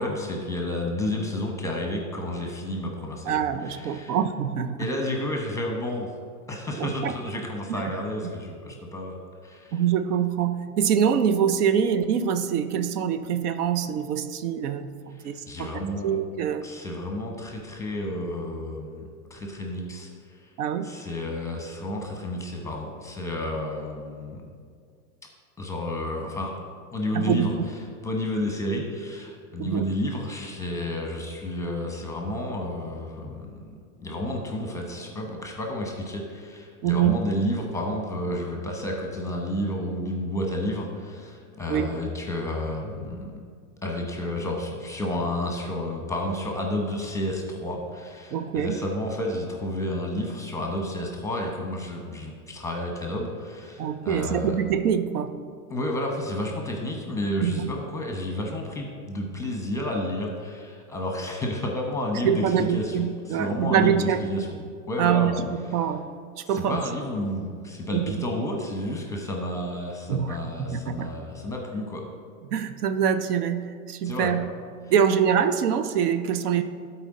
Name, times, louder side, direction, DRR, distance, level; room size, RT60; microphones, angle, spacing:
voice 1, 0.0-4.2 4.8-6.1 6.5-9.8 15.2-16.2 16.6-19.0 19.3-20.5 20.8-24.5 25.6-26.6 26.9-27.6 28.0-43.4 43.8-54.6 55.7-64.5 64.9-65.4 66.5-72.0 74.0-74.4, left 1 dB, 5° left, 1 dB, 0.8 m, -31 dB
voice 2, 3.3-4.9 6.8-7.1 7.7-7.8 9.7-16.7 20.6-20.9 27.1-27.5 29.6-29.9 36.8-37.2 41.7-42.0 48.3-48.8 53.8-55.4 57.4-57.7 62.2-64.2 65.0-66.1 66.4-66.8 67.9-68.2 70.1-71.1 72.5-74.5 74.9-76.6, right 8 dB, 75° right, 10 dB, 0.7 m, -25 dB
12.5 x 4.4 x 3.7 m, 2.1 s
hypercardioid pair, 125°, 46 cm